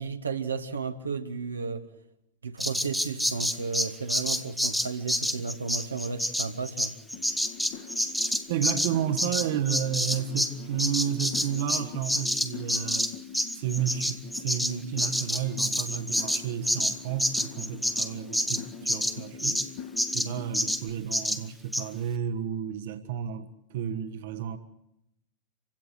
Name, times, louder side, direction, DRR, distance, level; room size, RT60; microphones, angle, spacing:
voice 1, 0.0-1.9 2.4-7.0, right 5 dB, 75° right, 1.6 m, -33 dB
Bird vocalization bird call bird song, 2.6-10.5 10.8-19.7 20.0-20.3 20.5-20.8 21.1-21.4 21.7-21.8, equal, ahead, 1.1 m, -28 dB
sound 1, 7.1-20.9, left 8 dB, 45° left, 1.8 m, -44 dB
voice 2, 8.5-13.1 13.5-19.6 20.1-24.6, right 9 dB, 55° right, 1.5 m, -32 dB
27.5 x 16.5 x 8.1 m
figure-of-eight pair, 90°, 0 cm